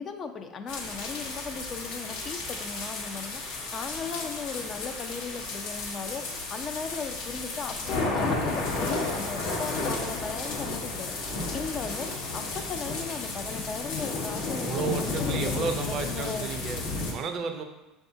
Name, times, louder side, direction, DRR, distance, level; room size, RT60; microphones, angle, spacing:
voice 1, 0.0-15.7 16.0-16.5, left 5 dB, 40° left, 6 dB, 0.4 m, -37 dB
sound 1, 0.7-17.1, left 3 dB, 70° left, 0.8 m, -32 dB
voice 2, 14.4-17.6, right 5 dB, 50° right, 6 dB, 0.4 m, -33 dB
6.0 x 2.3 x 2.6 m, 1.1 s
hypercardioid pair, 75°, 0 cm